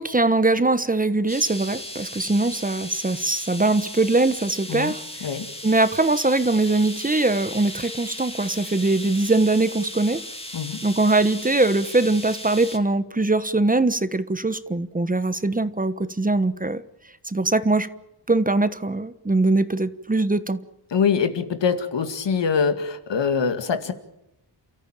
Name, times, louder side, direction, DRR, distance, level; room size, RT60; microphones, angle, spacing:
voice 1, 0.0-5.3 5.6-10.2 10.8-16.8 17.2-17.9 18.3-20.6, right 2 dB, 20° right, 13 dB, 1.1 m, -22 dB
sound 1, 1.3-12.8, left 1 dB, 15° left, 3.0 m, -37 dB
voice 2, 20.9-23.9, left 6 dB, 75° left, 8 dB, 2.3 m, -23 dB
29.5 x 14.0 x 8.9 m, 0.91 s
wide cardioid pair, 95°, 43 cm